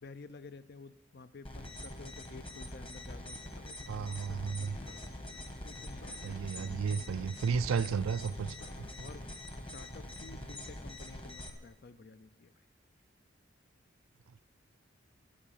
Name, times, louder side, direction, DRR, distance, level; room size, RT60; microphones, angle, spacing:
voice 1, 0.0-5.2 5.6-7.4 9.0-9.3 9.6-12.6, left 4 dB, 50° left, 0.5 m, -52 dB
sound 1, 1.4-11.5, left 1 dB, 25° left, 1.3 m, -44 dB
voice 2, 3.9-4.8 6.2-8.9, right 6 dB, 90° right, 0.4 m, -33 dB
sound 2, 4.3-9.5, left 1 dB, 80° left, 2.6 m, -56 dB
11.5 x 8.7 x 9.0 m
head